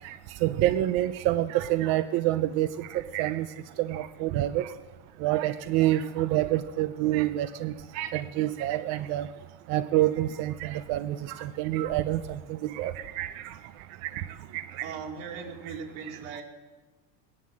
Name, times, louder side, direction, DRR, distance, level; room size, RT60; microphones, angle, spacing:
voice 1, 0.4-2.7 3.1-3.4 3.8-4.6 5.2-9.3 9.7-11.2 11.6-12.2 12.8-13.3, right 14 dB, 40° right, 12 dB, 0.4 m, -26 dB
voice 2, 14.8-16.4, right 6 dB, 65° right, 1 dB, 3.0 m, -38 dB
17.5 x 11.0 x 7.5 m, 1.3 s
cardioid pair, 160°, 42 cm